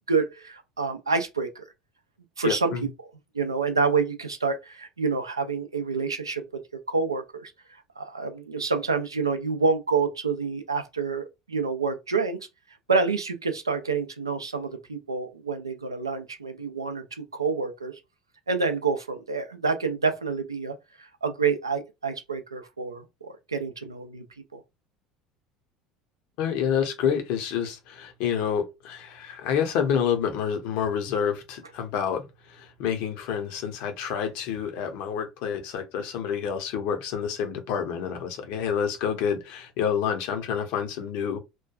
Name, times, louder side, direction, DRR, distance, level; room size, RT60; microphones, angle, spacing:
voice 1, 0.1-1.6 2.4-2.7 3.3-6.4 6.9-7.5 8.0-12.4 12.9-17.9 18.5-24.2 24.5-24.6, right 4 dB, 80° right, 0.4 m, -28 dB
voice 2, 2.4-2.9 26.4-41.4, left 7 dB, 55° left, 0.7 m, -28 dB
3.0 x 2.3 x 2.3 m
figure-of-eight pair, 65°, 2 cm